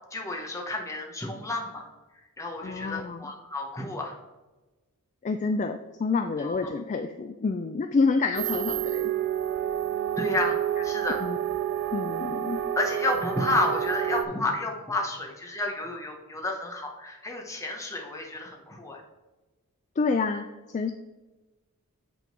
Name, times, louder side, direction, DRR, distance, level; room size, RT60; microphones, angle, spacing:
voice 1, 0.1-1.8 2.4-4.2 6.4-6.7 10.1-11.2 12.8-19.0, left 2 dB, 15° left, 0 dB, 1.0 m, -31 dB
voice 2, 2.6-3.3 5.2-9.1 11.2-11.4 11.9-12.6 20.0-20.9, left 4 dB, 35° left, 7 dB, 0.3 m, -28 dB
sound 1, 8.3-14.2, right 11 dB, 50° right, 0.3 m, -29 dB
8.3 x 3.8 x 4.5 m, 1.1 s
head